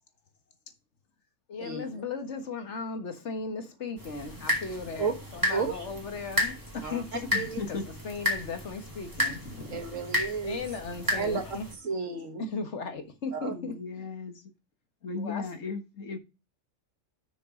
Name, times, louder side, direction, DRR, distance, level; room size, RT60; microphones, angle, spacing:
voice 1, 1.5-7.3 7.7-7.8 8.0-9.9 10.4-11.7 12.4-13.7 15.2-15.4, left 4 dB, 65° left, 1.7 m, -36 dB
sound 1, 4.0-11.7, left 1 dB, 15° right, 2.5 m, -33 dB
voice 2, 5.5-5.8 6.8-7.0 7.3-7.6 9.7-10.7 11.1-11.4 11.8-12.5 13.3-13.5, right 5 dB, 85° right, 2.1 m, -32 dB
voice 3, 7.3-7.9 13.5-14.4 15.0-16.2, left 4 dB, 80° left, 1.8 m, -36 dB
6.5 x 6.4 x 5.1 m
omnidirectional pair, 1.3 m